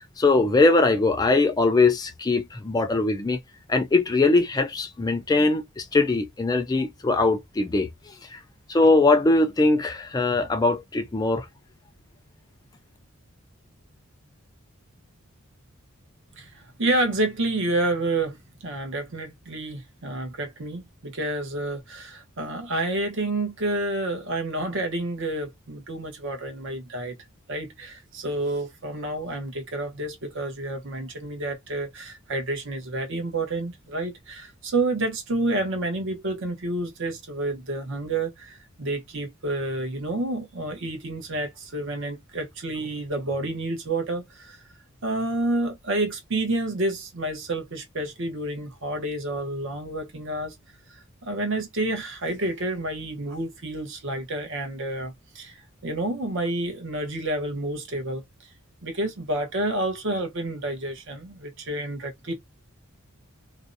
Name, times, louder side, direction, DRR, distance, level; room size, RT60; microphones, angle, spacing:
voice 1, 0.2-3.4 3.7-8.4 8.7-11.5, left 3 dB, 20° left, 0.3 m, -21 dB
voice 2, 16.4-18.4 18.6-27.2 27.5-44.6 45.0-50.5 51.2-55.6 55.8-58.2 58.8-62.3, right 2 dB, 60° right, 0.8 m, -29 dB
2.5 x 2.0 x 2.5 m
head